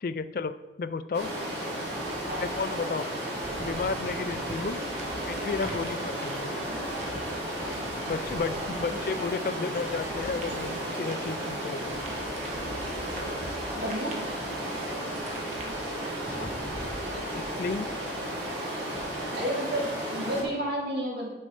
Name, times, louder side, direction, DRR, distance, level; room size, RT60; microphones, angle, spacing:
voice 1, 0.0-1.3 2.4-3.1 3.6-4.8 5.3-6.6 8.1-12.0 16.5-16.6 17.3-17.9, left 4 dB, 50° left, 13 dB, 0.3 m, -33 dB
Stream, 1.1-20.4, right 1 dB, 80° right, 2.6 m, -33 dB
sound 1, 3.4-17.4, right 1 dB, 40° right, 1.2 m, -46 dB
voice 2, 13.8-14.2 19.3-21.3, right 1 dB, 65° right, -2 dB, 2.1 m, -31 dB
8.5 x 5.3 x 5.0 m, 1.2 s
head